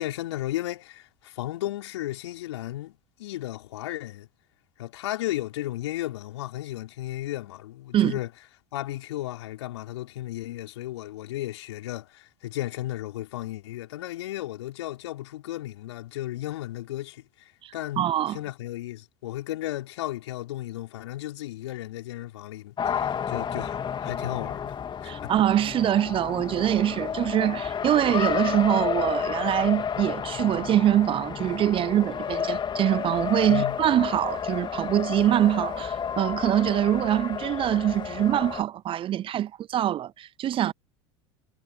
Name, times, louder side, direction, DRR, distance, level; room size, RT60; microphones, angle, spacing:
voice 1, 0.0-4.3 4.8-8.3 8.7-17.2 17.7-24.7 25.0-25.3 33.5-33.8, left 15 dB, 70° left, 4.9 m, -34 dB
voice 2, 17.6-18.4 25.0-40.7, right 12 dB, 35° right, 0.6 m, -24 dB
Race car auto racing, 22.8-38.6, left 7 dB, 30° left, 2.7 m, -31 dB
figure-of-eight pair, 75°, 15 cm